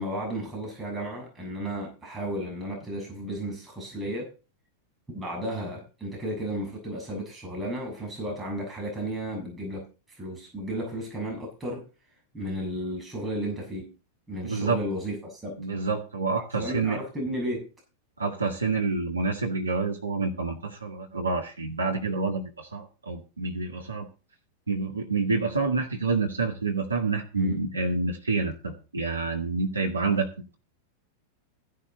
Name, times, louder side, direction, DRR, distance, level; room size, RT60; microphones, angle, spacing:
voice 1, 0.0-4.3 5.1-11.8 12.3-13.9 14.3-15.6 16.5-17.7 27.4-27.6, equal, 10° right, -2 dB, 6.6 m, -33 dB
voice 2, 14.4-14.8 15.6-17.0 18.2-24.1 24.7-30.3, right 3 dB, 80° right, 2 dB, 2.0 m, -28 dB
14.5 x 11.5 x 4.0 m, 0.33 s
figure-of-eight pair, 90°, 0 cm